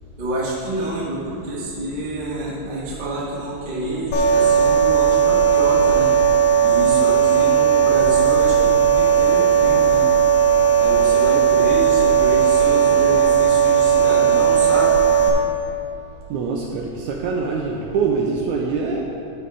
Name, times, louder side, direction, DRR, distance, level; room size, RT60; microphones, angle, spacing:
voice 1, 0.2-6.1 6.6-10.0 10.8-15.0, right 1 dB, 50° right, -6 dB, 0.6 m, -27 dB
sound 1, 4.1-15.3, right 8 dB, 85° left, 2.5 m, -16 dB
voice 2, 16.3-19.0, right 5 dB, 80° right, 0 dB, 1.7 m, -24 dB
11.5 x 4.5 x 4.9 m, 2.7 s
omnidirectional pair, 3.9 m